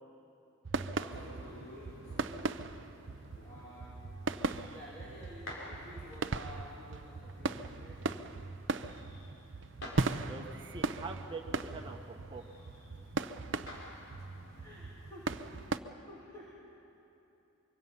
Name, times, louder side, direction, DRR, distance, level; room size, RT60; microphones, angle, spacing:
sound 1, 0.6-15.8, right 3 dB, 60° right, 0.6 m, -38 dB
voice 1, 1.0-2.7 3.4-4.1 4.7-8.4 14.5-16.5, equal, 20° left, -7 dB, 3.0 m, -52 dB
sound 2, 1.1-15.7, left 1 dB, 75° left, 4.5 m, -52 dB
voice 2, 10.3-12.4, right 3 dB, 25° right, 1 dB, 1.4 m, -44 dB
24.5 x 23.5 x 5.5 m, 2.9 s
head